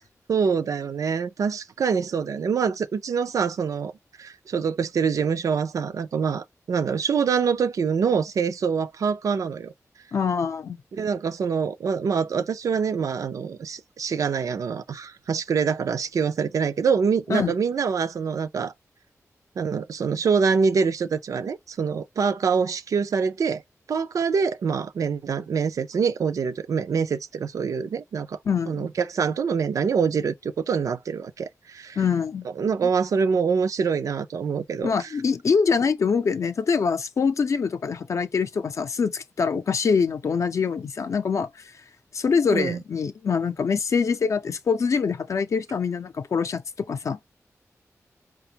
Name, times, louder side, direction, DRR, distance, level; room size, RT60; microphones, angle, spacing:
voice 1, 0.3-3.9 4.2-9.7 10.9-18.7 19.6-23.6 23.9-28.4 28.7-32.0 32.6-35.1 42.5-42.8, right 6 dB, 75° right, 0.4 m, -25 dB
voice 2, 10.1-10.8 17.3-17.5 28.5-28.9 32.0-32.5 34.8-41.5 42.1-46.6 46.9-47.4, left 5 dB, 60° left, 0.5 m, -24 dB
5.0 x 2.2 x 2.7 m
wide cardioid pair, 125°, 6 cm